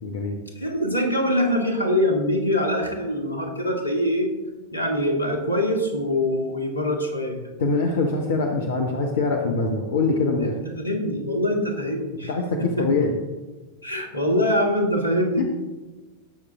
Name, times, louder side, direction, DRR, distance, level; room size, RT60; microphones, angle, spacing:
voice 1, 0.0-0.4 7.6-10.6 12.3-13.1 15.4-15.5, left 3 dB, 60° left, 2 dB, 1.2 m, -23 dB
voice 2, 0.6-4.3 4.7-7.4 10.3-12.3 12.8-12.9 13.8-15.4, left 1 dB, 80° left, 2 dB, 2.2 m, -24 dB
18.0 x 6.8 x 3.7 m, 1.2 s
figure-of-eight pair, 90°, 0 cm